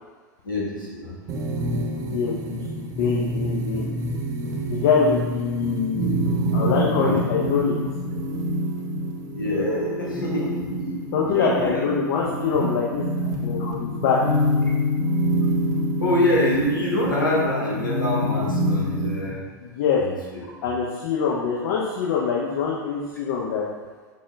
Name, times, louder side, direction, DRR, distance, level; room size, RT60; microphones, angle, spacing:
voice 1, 0.4-1.2 6.8-7.2 9.3-10.9 11.2-11.9 16.0-19.4 20.0-20.4, left 1 dB, 90° left, -4 dB, 1.0 m, -25 dB
sound 1, 1.3-19.3, equal, 35° right, 0.8 m, -26 dB
voice 2, 2.1-3.9 4.6-7.8 11.1-14.2 19.6-20.0 20.6-23.6, left 6 dB, 60° left, -4 dB, 0.6 m, -24 dB
5.2 x 2.3 x 3.2 m, 1.4 s
hypercardioid pair, 95°, 11 cm